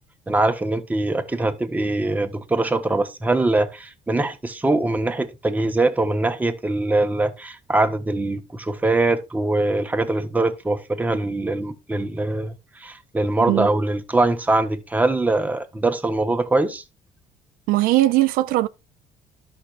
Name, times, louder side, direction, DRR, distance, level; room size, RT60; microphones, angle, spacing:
voice 1, 0.3-16.8, right 2 dB, 10° right, 1.1 m, -22 dB
voice 2, 17.7-18.7, right 16 dB, 85° right, 0.5 m, -19 dB
13.0 x 5.8 x 2.5 m
cardioid pair, 120°, 14 cm